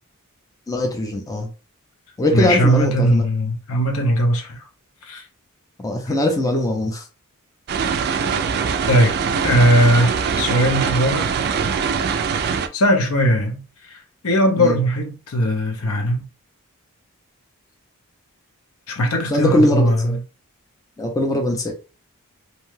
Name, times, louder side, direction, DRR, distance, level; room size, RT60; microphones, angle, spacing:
voice 1, 0.7-1.5 2.2-3.2 5.8-7.0 14.6-14.8 19.3-20.2 21.0-21.7, left 1 dB, 15° left, 0.5 m, -21 dB
voice 2, 2.3-4.6 5.0-5.2 8.9-11.3 12.7-16.3 18.9-20.2, equal, 70° left, 0.7 m, -19 dB
sound 1, 7.7-12.7, right 6 dB, 45° right, 0.3 m, -22 dB
2.7 x 2.2 x 3.1 m
head